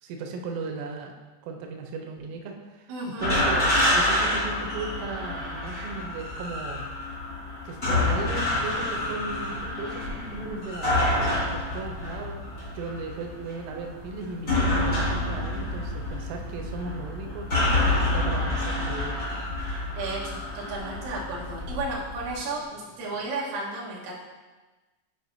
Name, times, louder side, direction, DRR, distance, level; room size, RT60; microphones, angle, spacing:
voice 1, 0.0-1.1 1.4-6.8 7.6-12.5 12.7-17.5 18.1-19.2, right 3 dB, 90° right, 3 dB, 3.2 m, -36 dB
voice 2, 2.9-3.3 20.0-24.1, right 2 dB, 65° right, -5 dB, 2.3 m, -33 dB
sound 1, 3.2-22.3, left 1 dB, 55° left, 0.8 m, -28 dB
sound 2, 7.9-23.2, left 1 dB, 80° left, 4.4 m, -45 dB
8.9 x 5.0 x 2.6 m, 1.2 s
omnidirectional pair, 5.5 m